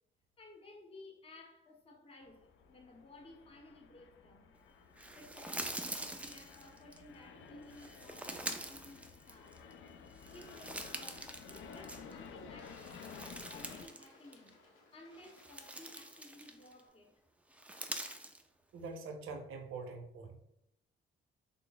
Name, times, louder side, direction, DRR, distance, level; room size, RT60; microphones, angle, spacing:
voice 1, 0.4-4.6 5.2-9.6 10.3-12.9 13.5-14.6 14.9-17.2, left 2 dB, 25° left, 0.7 m, -56 dB
sound 1, 2.2-13.9, left 6 dB, 65° left, 0.4 m, -53 dB
sound 2, 5.0-7.0 7.7-9.7 10.1-12.3 12.6-14.1 14.3-14.5 15.1-16.8 17.5-18.4, right 1 dB, 5° right, 0.3 m, -45 dB
Bird / Water, 10.2-16.9, left 3 dB, 90° left, 0.8 m, -64 dB
voice 2, 18.7-20.4, right 4 dB, 75° right, 0.6 m, -44 dB
3.4 x 2.0 x 3.9 m
cardioid pair, 90°, 21 cm